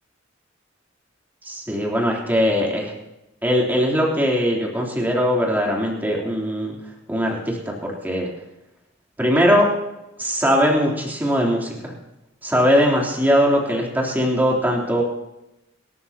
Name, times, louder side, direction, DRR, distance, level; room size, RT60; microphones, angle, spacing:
voice 1, 1.4-2.9 3.4-6.7 7.1-7.6 7.8-8.3 9.2-9.7 10.2-11.9 12.4-15.0, equal, 10° right, -2 dB, 3.3 m, -20 dB
26.0 x 13.5 x 2.9 m, 0.94 s
head